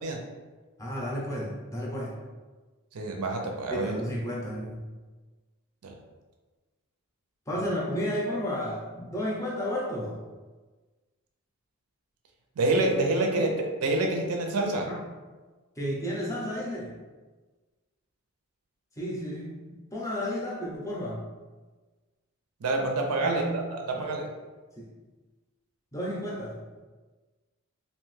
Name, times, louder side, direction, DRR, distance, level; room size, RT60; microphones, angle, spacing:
voice 1, 0.8-2.2 3.7-4.9 7.5-10.2 13.3-13.5 14.9-15.0 15.8-17.0 19.0-19.6 19.9-21.2 23.2-23.6 23.9-24.0 24.8-24.9 25.9-26.7, equal, 15° left, -4 dB, 0.5 m, -32 dB
voice 2, 2.9-3.9 5.8-5.9 12.6-13.5 13.8-14.9 22.6-24.3, right 2 dB, 85° right, 2 dB, 0.5 m, -27 dB
2.6 x 2.2 x 3.1 m, 1.3 s
head